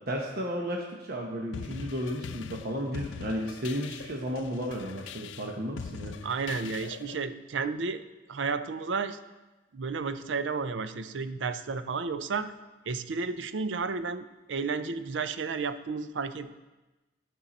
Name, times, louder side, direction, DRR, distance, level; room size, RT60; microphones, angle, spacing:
voice 1, 0.1-6.1, equal, 55° right, 1 dB, 0.9 m, -33 dB
sound 1, 1.5-7.2, left 6 dB, 85° left, 0.4 m, -42 dB
voice 2, 6.2-8.0 8.3-9.2 9.7-12.5 12.9-16.6, right 4 dB, 85° right, 11 dB, 0.5 m, -32 dB
11.5 x 5.5 x 4.2 m, 1.1 s
head